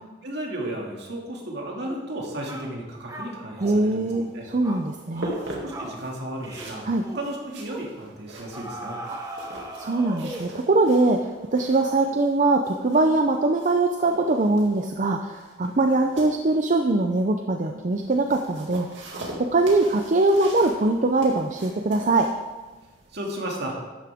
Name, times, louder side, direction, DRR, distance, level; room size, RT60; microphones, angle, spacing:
voice 1, 0.2-4.5 5.5-9.0 23.1-23.8, right 1 dB, 60° right, -1 dB, 2.4 m, -34 dB
sound 1, 1.9-2.1 2.5-2.7 3.1-3.8 4.1-4.3 4.6-4.8 5.2-5.4 5.7-6.0 6.4-6.7 7.0-7.3 7.7-7.9 8.5-10.6, right 1 dB, 20° right, 1.3 m, -38 dB
voice 2, 3.6-5.3 6.9-7.0 9.1-9.2 9.8-11.2 11.5-18.9 19.5-22.3, right 2 dB, 40° right, 4 dB, 0.6 m, -22 dB
sound 2, 4.2-23.1, right 1 dB, 80° right, 2.5 m, -42 dB
12.5 x 9.7 x 3.6 m, 1.3 s
head